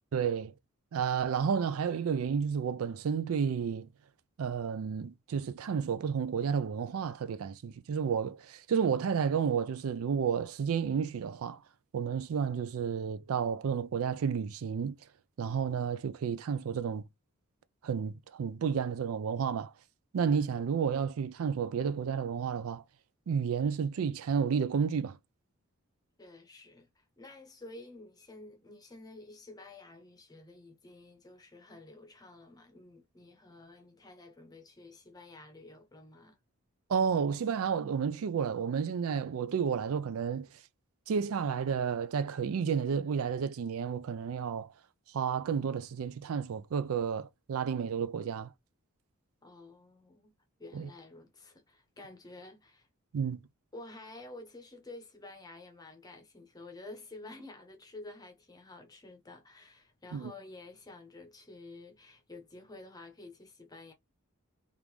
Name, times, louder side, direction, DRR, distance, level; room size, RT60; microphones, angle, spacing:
voice 1, 0.1-0.5 0.9-3.9 4.4-11.6 11.9-15.0 15.4-17.0 17.8-19.7 20.1-22.8 23.3-25.2 36.9-40.5 41.1-44.7 45.1-48.5 50.7-50.9 53.1-53.4 60.1-60.3, right 6 dB, 75° right, 0.4 m, -31 dB
voice 2, 26.2-36.4 49.4-50.3 50.6-52.9 53.7-63.9, left 2 dB, 15° left, 0.8 m, -50 dB
3.5 x 2.5 x 3.0 m
head